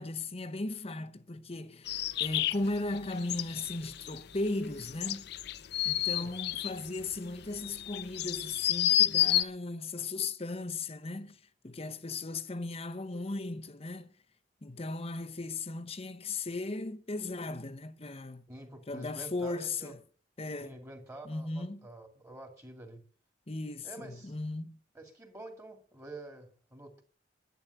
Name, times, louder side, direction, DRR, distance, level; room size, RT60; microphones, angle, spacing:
voice 1, 0.0-5.3 5.8-14.1 14.6-18.5 18.9-20.0 20.4-20.8 21.2-21.9 23.5-24.8, left 2 dB, 35° left, 0.9 m, -37 dB
sound 1, 1.9-9.4, left 12 dB, 60° left, 0.7 m, -30 dB
voice 2, 6.0-6.3 18.5-19.9 20.6-23.0 23.8-24.4 24.9-27.0, right 2 dB, 15° right, 2.5 m, -48 dB
11.0 x 10.5 x 7.9 m
head